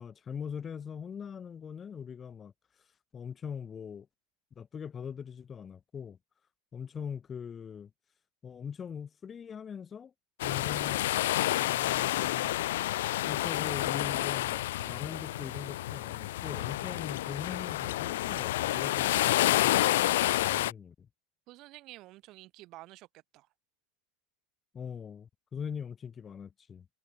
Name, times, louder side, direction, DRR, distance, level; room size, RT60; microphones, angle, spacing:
voice 1, 0.0-2.5 3.1-4.1 4.6-6.2 6.7-7.9 8.4-10.1 10.4-11.1 11.6-12.6 13.3-21.1 24.7-26.9, left 7 dB, 30° left, 1.8 m, -41 dB
sound 1, 10.4-20.7, left 15 dB, 80° left, 0.5 m, -29 dB
voice 2, 21.5-23.5, right 18 dB, 55° right, 3.3 m, -50 dB
hypercardioid pair, 100°, 0 cm